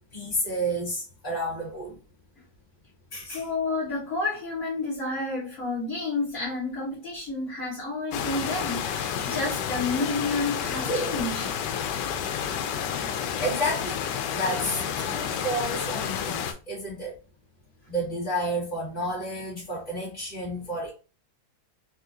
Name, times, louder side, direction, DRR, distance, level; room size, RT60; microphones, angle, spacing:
voice 1, 0.1-2.0 3.1-3.5 10.8-11.2 13.4-14.0 14.3-17.1 17.9-20.9, right 1 dB, 25° left, -7 dB, 1.7 m, -30 dB
voice 2, 3.2-11.5, left 3 dB, 55° left, -7 dB, 1.5 m, -30 dB
sound 1, 8.1-16.5, left 8 dB, 85° left, 1.2 m, -30 dB
4.3 x 2.4 x 2.7 m, 0.34 s
omnidirectional pair, 1.8 m